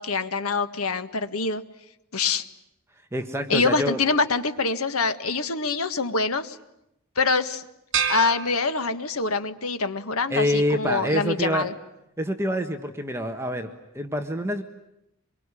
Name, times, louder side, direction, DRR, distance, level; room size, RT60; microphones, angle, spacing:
voice 1, 0.0-1.6 2.1-2.4 3.5-6.6 7.1-7.6 8.1-11.7, left 4 dB, 85° left, 10 dB, 1.7 m, -25 dB
voice 2, 3.1-4.0 10.3-11.7 12.2-13.7 13.9-14.6, equal, 10° right, 5 dB, 1.5 m, -26 dB
sound 1, 7.9-9.4, right 7 dB, 60° right, 4.0 m, -29 dB
26.0 x 23.5 x 9.9 m, 0.84 s
head